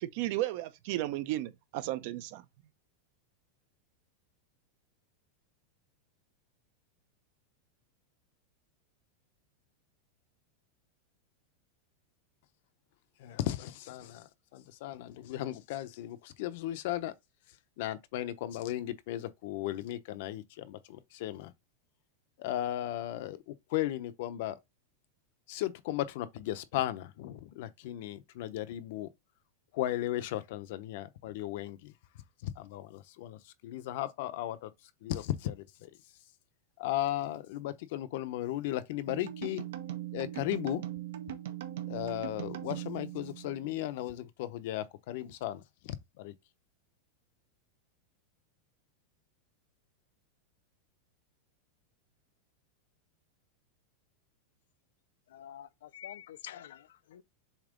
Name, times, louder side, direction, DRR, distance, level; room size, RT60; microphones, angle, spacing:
voice 1, 0.0-2.4, right 15 dB, 45° right, 0.7 m, -34 dB
voice 2, 13.2-17.1 17.5-21.5 22.4-24.6 25.5-29.1 29.7-31.9 32.4-36.2 36.8-39.6 40.1-40.8 41.9-46.3, left 13 dB, 50° left, 0.8 m, -36 dB
sound 1, 39.1-43.9, right 12 dB, 80° right, 1.3 m, -40 dB
voice 3, 55.3-57.2, left 11 dB, 85° left, 0.6 m, -47 dB
7.2 x 3.0 x 5.1 m
supercardioid pair, 175°, 0 cm